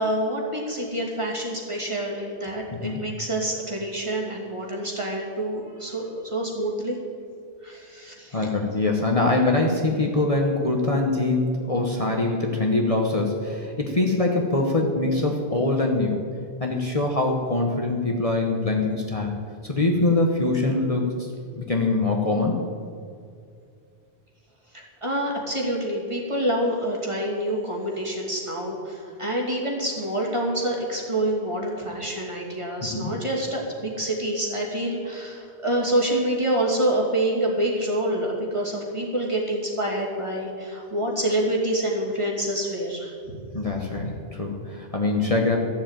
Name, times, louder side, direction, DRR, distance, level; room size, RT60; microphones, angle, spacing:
voice 1, 0.0-7.0 7.6-8.5 24.7-43.1, right 1 dB, 30° right, -2 dB, 2.6 m, -27 dB
voice 2, 2.7-3.1 8.3-16.2 16.6-19.4 19.6-21.3 21.5-22.6 32.8-33.1 43.5-44.1 44.3-45.6, left 2 dB, 35° left, 0 dB, 1.2 m, -23 dB
14.5 x 7.3 x 9.0 m, 2.4 s
omnidirectional pair, 1.1 m